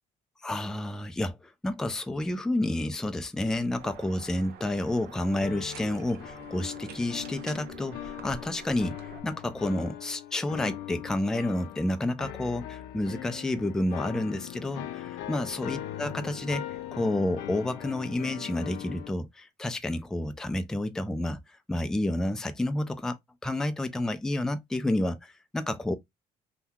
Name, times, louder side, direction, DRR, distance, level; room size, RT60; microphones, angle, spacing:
voice 1, 0.4-23.2 23.4-26.0, left 1 dB, 5° left, 0.3 m, -30 dB
sound 1, 3.8-9.2, right 7 dB, 70° right, 0.6 m, -47 dB
sound 2, 5.4-19.1, left 12 dB, 90° left, 0.4 m, -40 dB
2.8 x 2.1 x 3.5 m
cardioid pair, 110°, 17 cm